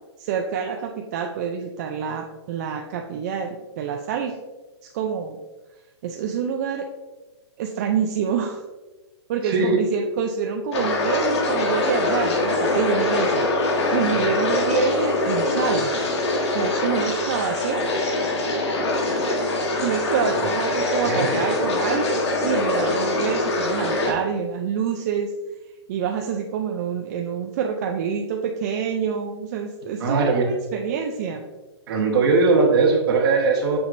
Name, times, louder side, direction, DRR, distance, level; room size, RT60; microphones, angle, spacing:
voice 1, 0.2-4.4 4.9-5.4 6.0-6.9 7.6-8.6 9.3-15.9 16.5-18.4 19.2-19.4 19.8-25.3 25.9-31.4, right 7 dB, 35° right, 2 dB, 0.4 m, -27 dB
voice 2, 9.4-9.8 14.1-14.3 21.0-21.3 30.0-30.4 31.9-33.8, right 4 dB, 55° right, 2 dB, 1.4 m, -19 dB
sound 1, 10.7-24.1, left 2 dB, 70° left, 1.5 m, -23 dB
6.2 x 6.0 x 2.6 m, 1.2 s
hypercardioid pair, 160°, 15 cm